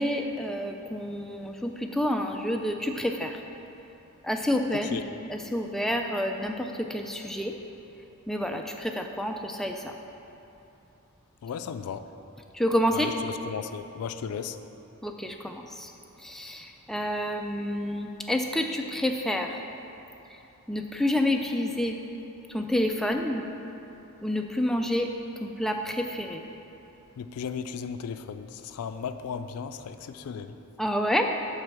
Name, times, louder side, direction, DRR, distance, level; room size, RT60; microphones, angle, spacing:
voice 1, 0.0-3.4 4.2-5.0 5.3-7.6 8.3-10.0 12.5-13.1 15.0-15.9 16.2-19.6 20.7-22.0 22.5-23.5 24.2-25.1 25.4-26.4 30.8-31.3, left 1 dB, ahead, 3 dB, 0.3 m, -28 dB
voice 2, 11.4-12.1 12.9-14.6 27.2-30.5, left 6 dB, 90° left, 10 dB, 0.3 m, -35 dB
6.4 x 4.3 x 6.1 m, 2.9 s
head